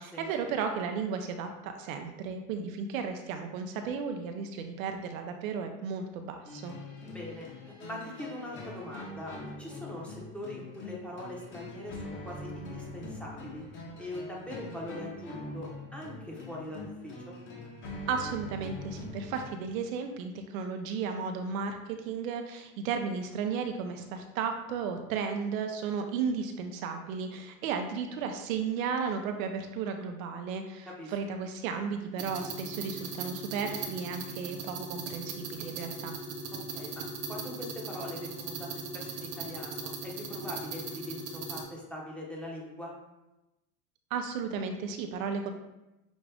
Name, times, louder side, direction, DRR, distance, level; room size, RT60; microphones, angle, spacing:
voice 1, 0.0-6.7 18.1-36.1 44.1-45.5, right 6 dB, 70° right, 5 dB, 0.7 m, -34 dB
sound 1, 6.4-19.5, left 2 dB, 30° left, 1.0 m, -43 dB
voice 2, 7.0-13.6 14.0-17.4 30.9-31.1 36.5-42.9, left 1 dB, 5° left, -4 dB, 0.9 m, -42 dB
sound 2, 32.2-41.6, right 4 dB, 35° right, 0.7 m, -39 dB
6.1 x 2.5 x 3.4 m, 0.97 s
supercardioid pair, 140°, 42 cm